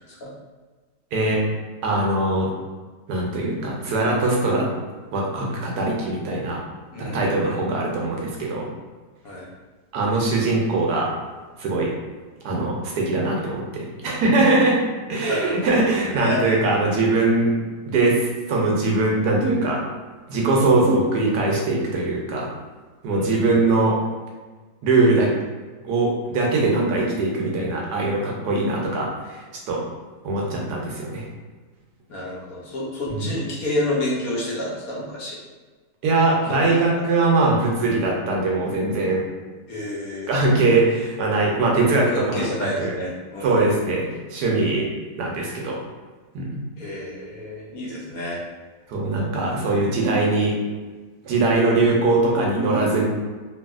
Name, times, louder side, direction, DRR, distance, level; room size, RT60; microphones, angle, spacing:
voice 1, 1.1-1.4 1.8-2.5 3.1-4.7 5.1-6.6 7.0-8.7 9.9-11.1 11.6-11.9 12.4-17.5 17.9-19.8 20.3-22.5 23.0-24.0 24.8-25.3 25.8-29.8 30.2-31.3 33.1-33.3 36.0-39.2 40.3-42.5 42.8-42.9 43.4-44.9 45.2-45.8 46.3-46.7 48.9-50.5 51.2-53.1, right 2 dB, 75° right, -1 dB, 1.1 m, -21 dB
voice 2, 6.9-7.6 9.2-9.5 15.3-16.4 23.1-23.7 32.1-35.4 36.5-36.6 39.7-40.5 42.0-43.9 46.8-48.4, left 1 dB, 65° left, -5 dB, 1.0 m, -30 dB
3.0 x 2.6 x 2.3 m, 1.4 s
omnidirectional pair, 1.8 m